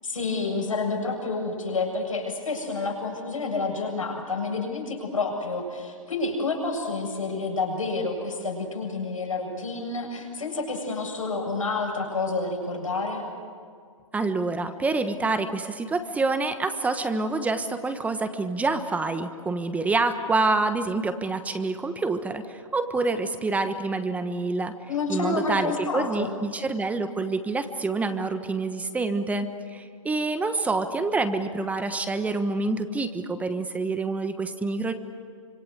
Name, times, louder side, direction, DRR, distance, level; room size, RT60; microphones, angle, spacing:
voice 1, 0.0-13.2 24.9-26.3, left 3 dB, 85° left, 0 dB, 7.6 m, -29 dB
voice 2, 14.1-24.7 25.1-34.9, right 3 dB, 10° right, 9 dB, 1.3 m, -27 dB
26.5 x 26.0 x 8.1 m, 2.2 s
hypercardioid pair, 130°, 17 cm